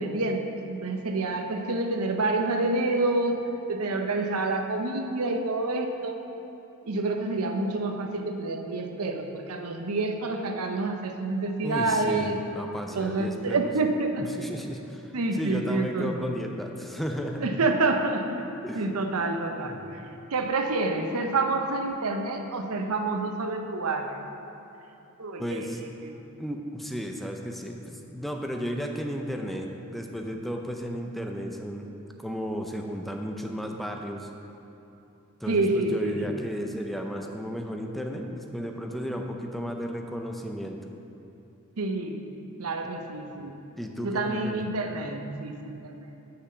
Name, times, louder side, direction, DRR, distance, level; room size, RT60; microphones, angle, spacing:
voice 1, 0.0-3.4 3.7-6.2 6.8-12.4 13.0-14.5 15.1-16.2 17.4-18.3 18.8-19.8 20.3-24.2 25.2-25.6 26.0-26.2 35.5-36.2 41.8-42.2 42.6-43.5 44.0-46.0, right 2 dB, 80° right, 4 dB, 0.7 m, -28 dB
voice 2, 11.6-13.7 14.2-17.5 18.6-18.8 19.6-19.8 25.4-25.8 26.4-31.9 32.2-34.3 35.4-40.8 43.8-44.7, equal, ahead, 2 dB, 0.5 m, -34 dB
6.6 x 5.9 x 6.7 m, 2.9 s
head